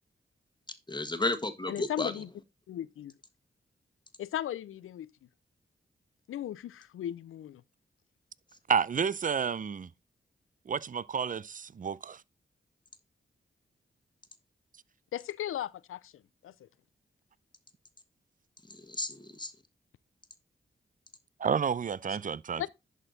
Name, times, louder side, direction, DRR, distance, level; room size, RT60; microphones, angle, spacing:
voice 1, 0.9-2.2 18.6-19.5, left 2 dB, 20° left, 1.4 m, -33 dB
voice 2, 1.7-2.3 2.7-3.1 4.2-5.1 6.3-7.6 15.1-16.7 22.6-22.7, left 11 dB, 85° left, 0.4 m, -37 dB
voice 3, 8.7-9.9 10.7-12.2 21.4-22.6, right 6 dB, 40° right, 0.5 m, -30 dB
11.0 x 4.4 x 3.9 m
cardioid pair, 45°, 21 cm